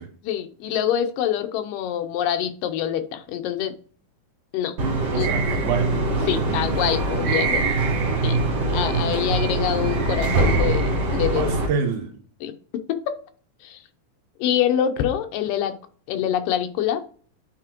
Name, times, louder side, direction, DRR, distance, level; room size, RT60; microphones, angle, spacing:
voice 1, 0.2-3.7 4.5-4.8 5.1-5.3 6.3-7.7 8.2-8.4 8.7-11.4 12.4-12.5 12.9-13.2 13.6-13.8 14.4-15.8 16.1-17.0, left 10 dB, 85° left, 2.4 m, -25 dB
sound 1, 4.8-11.7, right 2 dB, 55° right, 2.8 m, -23 dB
voice 2, 5.1-6.6 11.4-12.1, right 6 dB, 70° right, 2.3 m, -28 dB
9.8 x 4.0 x 3.0 m
omnidirectional pair, 3.8 m